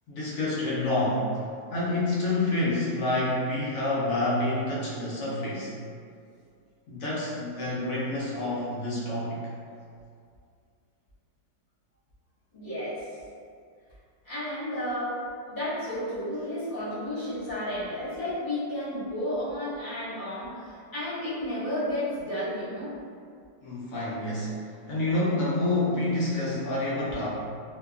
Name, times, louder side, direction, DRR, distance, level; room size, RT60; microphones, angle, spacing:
voice 1, 0.1-1.4 1.7-5.7 6.9-9.4 23.6-24.5 24.9-27.3, left 2 dB, 70° left, -7 dB, 0.8 m, -28 dB
voice 2, 12.5-13.1 14.2-15.2 15.5-22.9, left 1 dB, 40° left, -12 dB, 0.8 m, -32 dB
2.9 x 2.2 x 2.3 m, 2.3 s
omnidirectional pair, 2.0 m